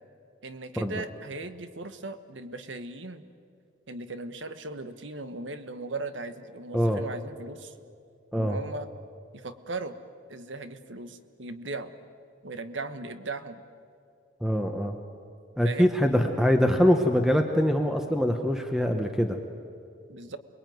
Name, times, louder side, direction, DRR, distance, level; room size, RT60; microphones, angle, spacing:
voice 1, 0.4-3.2 3.9-7.7 8.4-8.9 9.3-10.0 10.3-11.9 12.4-13.6 15.6-15.9 20.1-20.4, right 3 dB, 75° right, 10 dB, 1.4 m, -38 dB
voice 2, 14.4-15.0 15.6-19.4, equal, 5° right, 4 dB, 1.1 m, -23 dB
28.5 x 21.0 x 9.3 m, 2.4 s
head